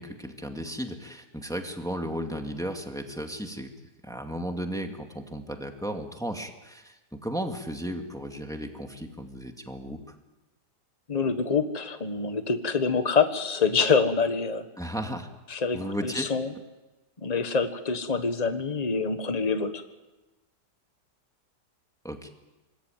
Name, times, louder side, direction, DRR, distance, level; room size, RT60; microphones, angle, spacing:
voice 1, 0.0-3.7 4.0-10.2 14.8-15.3 15.7-16.3 22.0-22.3, equal, ahead, 4 dB, 2.1 m, -34 dB
voice 2, 11.1-14.6 15.5-16.5 17.2-19.8, left 5 dB, 25° left, 8 dB, 1.4 m, -26 dB
25.5 x 20.5 x 9.2 m, 1.1 s
omnidirectional pair, 1.9 m